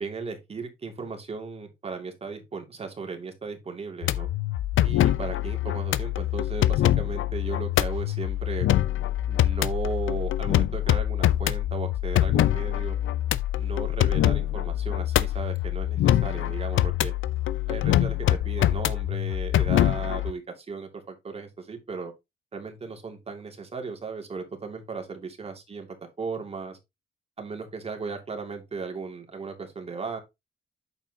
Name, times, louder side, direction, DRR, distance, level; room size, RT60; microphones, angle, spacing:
voice 1, 0.0-4.3 4.8-8.7 9.3-13.0 13.6-17.1 17.7-22.1 22.5-25.9 26.2-26.8 27.4-30.2, right 4 dB, 30° right, 2.4 m, -36 dB
sound 1, 4.0-20.3, left 13 dB, 75° left, 0.6 m, -24 dB
8.9 x 7.2 x 2.8 m
cardioid pair, 155°, 21 cm